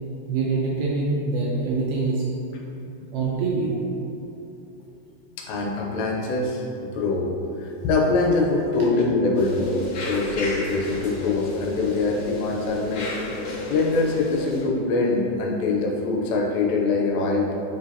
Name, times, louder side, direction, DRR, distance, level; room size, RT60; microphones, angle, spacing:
voice 1, 0.3-2.2 2.7-2.9 3.1-3.7, right 3 dB, 80° right, -4 dB, 2.3 m, -24 dB
voice 2, 5.4-7.3 7.6-13.1 13.7-17.5, left 3 dB, 90° left, -1 dB, 2.9 m, -23 dB
sound 1, 9.3-14.6, left 2 dB, 70° left, 1.6 m, -33 dB
9.2 x 4.8 x 2.9 m, 2.9 s
omnidirectional pair, 5.0 m